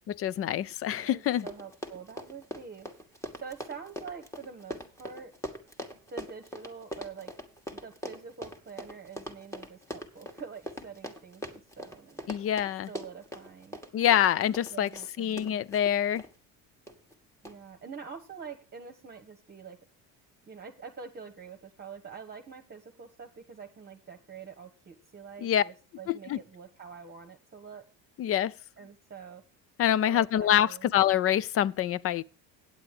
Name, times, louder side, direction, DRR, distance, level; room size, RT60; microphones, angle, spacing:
voice 1, 0.1-1.5 12.3-12.9 13.9-14.9 15.2-16.2 25.4-25.6 26.1-26.4 28.2-28.5 29.8-32.2, left 11 dB, 35° left, 0.4 m, -26 dB
voice 2, 0.9-2.9 3.3-5.3 6.1-7.3 7.7-12.3 12.9-13.8 14.7-15.6 17.4-19.8 20.5-27.8 28.8-29.4 30.0-30.9, right 6 dB, 25° right, 1.2 m, -46 dB
Run, 1.0-1.1 1.3-16.3 16.9-17.1 17.4-17.5, equal, 5° left, 1.4 m, -41 dB
9.1 x 7.7 x 4.9 m
supercardioid pair, 100°, 39 cm